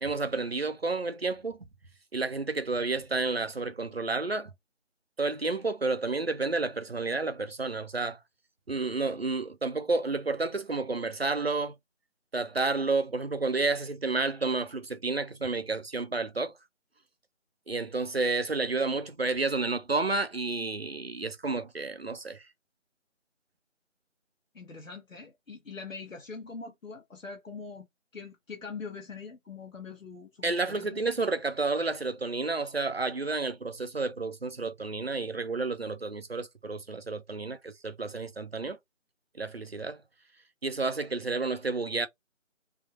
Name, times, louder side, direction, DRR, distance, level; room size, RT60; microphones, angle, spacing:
voice 1, 0.0-1.7 2.1-4.5 5.2-8.2 8.7-11.8 12.3-16.5 17.7-22.4 30.4-38.8 39.4-40.0 40.6-42.1, right 3 dB, 50° right, 0.5 m, -30 dB
voice 2, 24.5-27.9 28.1-31.0, left 4 dB, 80° left, 0.9 m, -43 dB
3.4 x 2.1 x 2.4 m
figure-of-eight pair, 170°, 39 cm